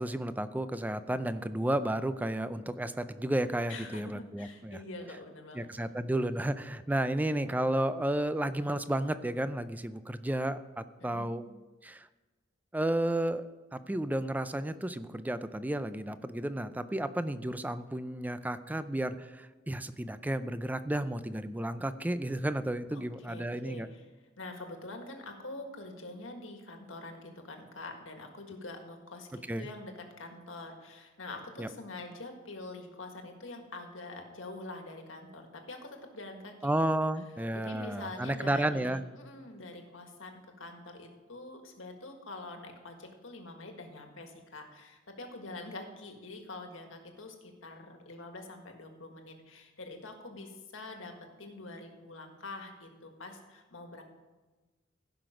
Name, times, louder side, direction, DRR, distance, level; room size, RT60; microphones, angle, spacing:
voice 1, 0.0-4.8 5.5-11.4 11.8-12.1 12.7-23.9 29.5-29.7 31.6-31.7 36.6-39.0, right 1 dB, 10° right, 12 dB, 0.4 m, -32 dB
voice 2, 3.7-5.9 11.0-11.3 22.9-24.1 24.4-36.7 37.5-40.3 40.6-51.1 51.4-54.0, left 2 dB, 85° left, 4 dB, 1.7 m, -45 dB
15.5 x 6.0 x 5.1 m, 1.2 s
head